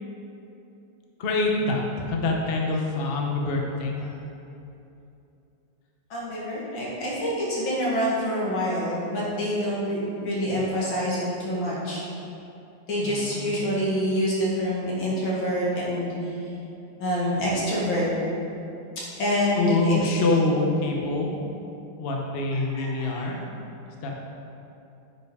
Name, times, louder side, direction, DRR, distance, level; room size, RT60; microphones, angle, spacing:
voice 1, 1.2-4.0 13.0-13.6 19.6-21.3 22.0-23.4 24.0-24.1, left 2 dB, 45° left, 0 dB, 0.8 m, -25 dB
voice 2, 6.1-12.1 12.9-16.1 17.0-18.1 19.2-20.0 22.7-23.2, equal, 85° left, -7 dB, 2.8 m, -26 dB
8.9 x 5.6 x 4.8 m, 2.8 s
omnidirectional pair, 2.1 m